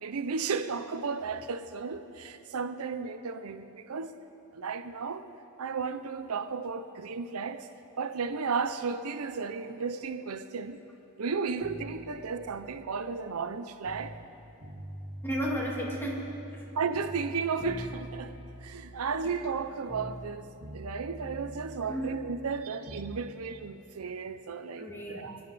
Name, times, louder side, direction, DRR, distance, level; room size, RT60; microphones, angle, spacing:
voice 1, 0.0-4.1 4.5-5.2 5.6-7.7 8.0-10.8 11.2-14.2 16.7-20.5 20.7-25.4, right 5 dB, 75° right, 0.6 m, -34 dB
sound 1, 11.6-14.3 14.6-16.7 16.9-20.3 20.6-23.2, right 1 dB, 45° right, 2.0 m, -44 dB
voice 2, 15.2-16.6 19.2-19.3 21.9-22.2 24.8-25.4, equal, 10° left, 2.2 m, -34 dB
24.0 x 11.5 x 4.1 m
head